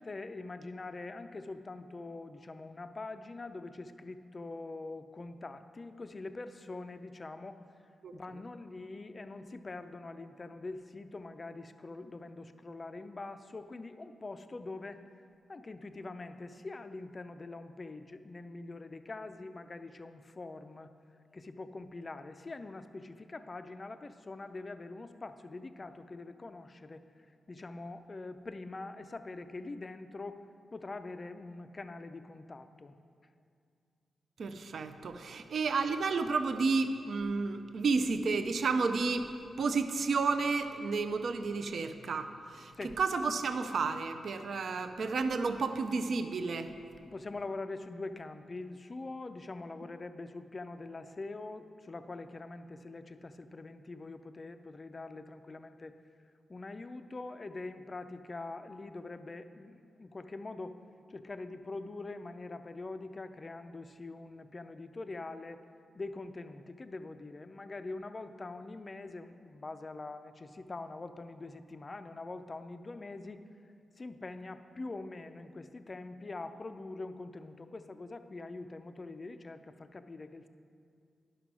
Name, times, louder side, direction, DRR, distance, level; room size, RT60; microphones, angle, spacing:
voice 1, 0.0-7.6 8.1-15.0 15.5-20.9 21.3-27.0 27.5-30.4 30.7-33.0 42.8-43.0 47.0-55.9 56.5-60.8 61.1-65.6 65.9-73.4 74.0-80.5, left 3 dB, 25° left, 10 dB, 0.4 m, -44 dB
voice 2, 34.4-46.7, right 4 dB, 55° right, 8 dB, 0.5 m, -31 dB
11.0 x 6.1 x 6.0 m, 2.3 s
wide cardioid pair, 170°, 0 cm